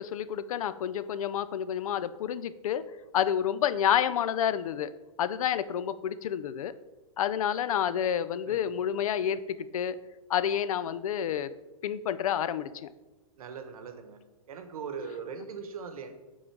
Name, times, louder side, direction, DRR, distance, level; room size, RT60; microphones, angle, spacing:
voice 1, 0.0-2.8 3.1-4.9 5.2-6.7 7.2-9.4 9.7-10.0 10.3-11.5 11.8-12.9, left 9 dB, 75° left, 14 dB, 0.4 m, -29 dB
voice 2, 8.4-8.8 13.3-14.2 14.5-16.1, right 6 dB, 85° right, 7 dB, 1.0 m, -40 dB
6.1 x 3.9 x 4.5 m, 1.1 s
hypercardioid pair, 170°, 18 cm